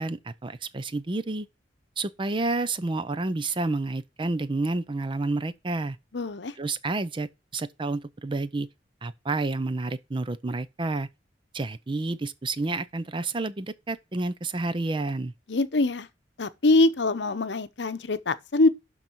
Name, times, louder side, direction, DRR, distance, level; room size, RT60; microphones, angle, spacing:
voice 1, 0.0-1.5 2.0-6.0 6.6-8.7 9.0-11.1 11.5-15.3, right 2 dB, 30° right, 0.5 m, -30 dB
voice 2, 6.1-6.5 15.5-16.1 16.4-18.7, left 2 dB, 70° left, 0.8 m, -23 dB
12.0 x 4.0 x 4.5 m
head